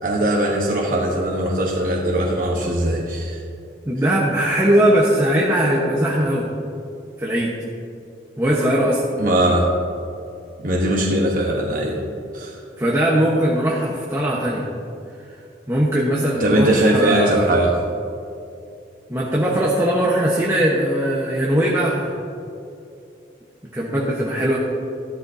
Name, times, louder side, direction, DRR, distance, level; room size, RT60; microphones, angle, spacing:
voice 1, 0.0-3.4 9.2-9.7 10.6-12.0 12.3-12.6 16.4-17.8, right 1 dB, 45° right, -2 dB, 1.1 m, -20 dB
voice 2, 3.9-6.5 7.2-7.5 8.4-9.0 12.8-14.6 15.2-15.3 15.7-17.5 19.1-22.1 23.7-24.6, right 1 dB, 15° right, -4 dB, 1.1 m, -20 dB
14.5 x 12.5 x 2.7 m, 2.6 s
head